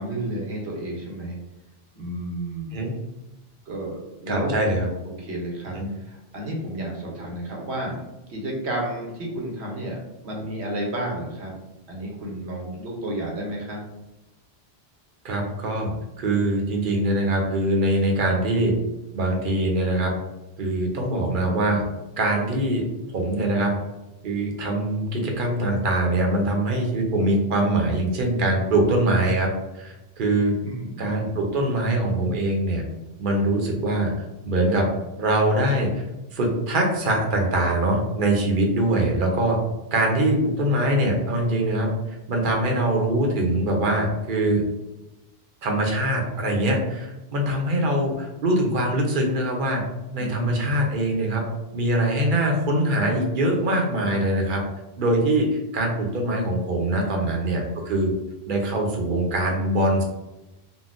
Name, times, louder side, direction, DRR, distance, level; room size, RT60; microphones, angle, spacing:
voice 1, 0.0-1.4 1.9-2.9 3.7-4.5 5.0-5.8 6.1-8.0 8.3-10.0 10.2-11.5 11.9-13.8 30.6-31.5 50.2-50.8 57.0-57.5, right 1 dB, 85° right, -1 dB, 1.1 m, -32 dB
voice 2, 4.3-4.9 5.7-5.9 15.2-18.7 19.1-20.1 20.6-21.8 22.2-22.8 23.1-23.7 24.2-30.6 31.0-32.8 33.2-34.1 34.4-34.9 35.2-36.0 36.3-39.6 39.9-41.9 42.3-44.6 45.6-49.8 50.1-51.4 51.7-54.6 55.0-58.1 58.5-60.0, right 1 dB, 55° right, 1 dB, 0.8 m, -23 dB
3.8 x 2.1 x 2.4 m, 0.99 s
omnidirectional pair, 1.1 m